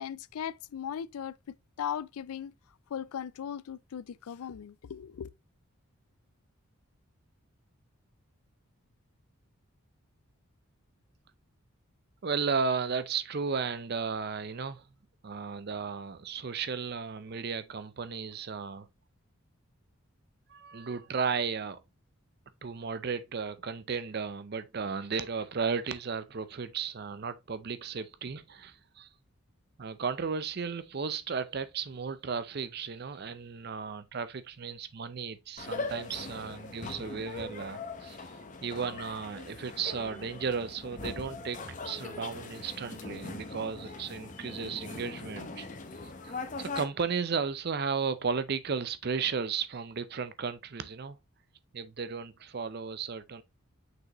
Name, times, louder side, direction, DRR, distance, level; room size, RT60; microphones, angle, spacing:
voice 1, 0.0-1.4 1.8-2.5 2.9-5.3, left 8 dB, 85° left, 0.4 m, -38 dB
voice 2, 12.2-14.8 15.2-18.9 20.5-21.8 22.6-29.1 29.8-38.2 38.6-45.7 46.2-51.2 51.7-53.4, right 5 dB, 45° right, 0.5 m, -34 dB
sound 1, 35.6-46.8, left 3 dB, 35° left, 0.8 m, -41 dB
6.2 x 5.1 x 3.0 m
head